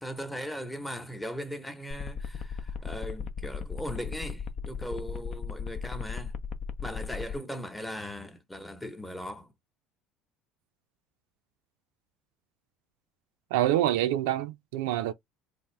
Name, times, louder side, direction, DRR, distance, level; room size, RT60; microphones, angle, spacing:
voice 1, 0.0-6.3 6.8-9.5, equal, 10° left, 0.9 m, -38 dB
sound 1, 1.9-7.3, left 6 dB, 50° left, 0.6 m, -36 dB
voice 2, 13.5-15.1, right 13 dB, 85° right, 0.4 m, -26 dB
3.5 x 2.6 x 3.2 m
supercardioid pair, 100°, 0 cm